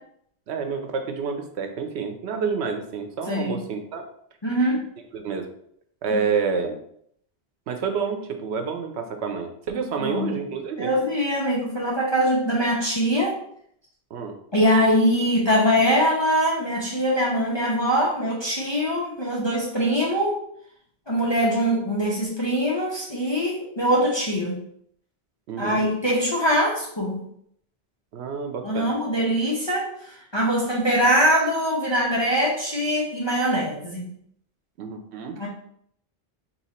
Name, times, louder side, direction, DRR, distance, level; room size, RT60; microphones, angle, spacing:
voice 1, 0.5-4.0 5.1-5.5 6.0-6.8 7.7-10.9 14.1-14.3 25.5-25.8 28.1-28.9 34.8-35.4, right 5 dB, 85° right, 5 dB, 0.9 m, -28 dB
voice 2, 3.3-3.6 4.4-4.8 6.1-6.2 10.0-10.3 10.8-13.3 14.5-20.4 21.1-24.5 25.6-27.2 28.6-34.1 35.4-35.5, equal, 30° left, -5 dB, 0.7 m, -23 dB
2.9 x 2.8 x 4.2 m, 0.69 s
omnidirectional pair, 1.1 m